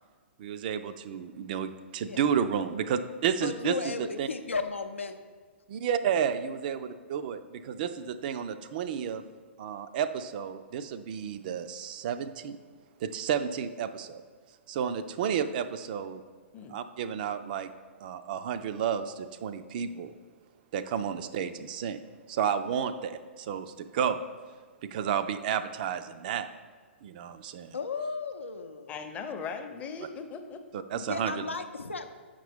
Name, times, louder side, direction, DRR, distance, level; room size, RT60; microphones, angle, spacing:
voice 1, 0.4-4.3 5.7-9.2 9.6-12.6 13.0-14.2 14.7-16.2 16.7-17.7 18.0-20.1 20.7-22.0 22.3-24.2 24.8-26.5 27.0-27.8 30.7-31.5, right 8 dB, 45° right, 10 dB, 0.4 m, -31 dB
voice 2, 3.4-5.2 6.1-6.2 27.7-28.9 30.9-32.1, left 4 dB, 80° left, 7 dB, 0.5 m, -35 dB
voice 3, 28.9-30.6, left 5 dB, 20° left, 6 dB, 0.6 m, -39 dB
7.6 x 5.1 x 3.4 m, 1.5 s
figure-of-eight pair, 115°, 7 cm